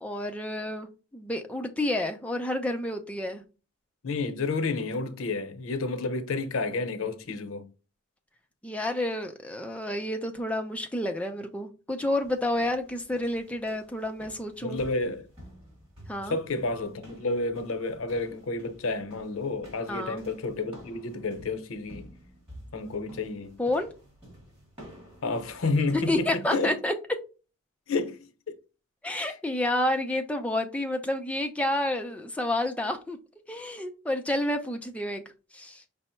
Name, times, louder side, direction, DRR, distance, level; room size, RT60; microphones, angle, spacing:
voice 1, 0.0-3.4 8.6-14.8 16.1-16.4 19.9-20.2 23.6-23.9 26.1-26.9 29.0-33.2 33.5-35.2 35.5-35.8, left 1 dB, 5° left, 0.5 m, -30 dB
voice 2, 4.0-7.6 14.6-15.3 16.3-22.1 22.7-23.5 25.2-26.7 27.9-28.5 29.2-29.3, left 3 dB, 90° left, 0.7 m, -30 dB
sound 1, 12.2-26.5, equal, 25° right, 2.7 m, -51 dB
5.4 x 2.0 x 4.3 m
head